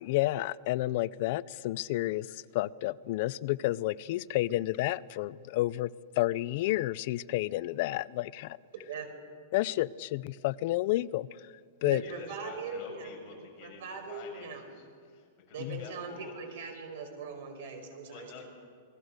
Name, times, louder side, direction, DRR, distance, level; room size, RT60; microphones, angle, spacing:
voice 1, 0.0-8.6 9.5-11.5 11.8-12.0 15.6-15.8, left 17 dB, 45° left, 18 dB, 0.5 m, -30 dB
voice 2, 8.7-9.1 11.8-13.3 13.6-14.6 15.5-18.4, right 4 dB, 60° right, 7 dB, 4.8 m, -41 dB
voice 3, 12.0-16.4 18.0-18.4, left 4 dB, 25° left, -2 dB, 6.7 m, -49 dB
28.0 x 20.5 x 6.6 m, 2.1 s
supercardioid pair, 170°, 0 cm